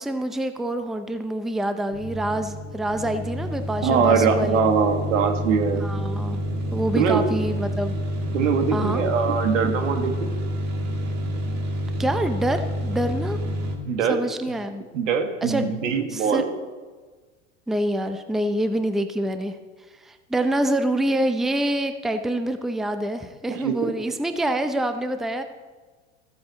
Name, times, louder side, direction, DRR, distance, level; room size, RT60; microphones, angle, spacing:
voice 1, 0.0-4.7 5.8-6.4 6.7-8.0 8.7-9.0 12.0-13.4 14.1-14.8 15.4-15.7 16.1-16.4 17.7-19.6 20.0-25.4, right 1 dB, ahead, 8 dB, 0.6 m, -26 dB
sound 1, 1.9-13.8, equal, 45° right, 2.3 m, -28 dB
voice 2, 3.8-5.9 7.0-7.2 8.3-10.3 13.9-14.2 14.9-16.5 23.5-23.9, right 6 dB, 85° right, 6 dB, 1.7 m, -22 dB
14.0 x 8.4 x 4.1 m, 1.4 s
hypercardioid pair, 105°, 37 cm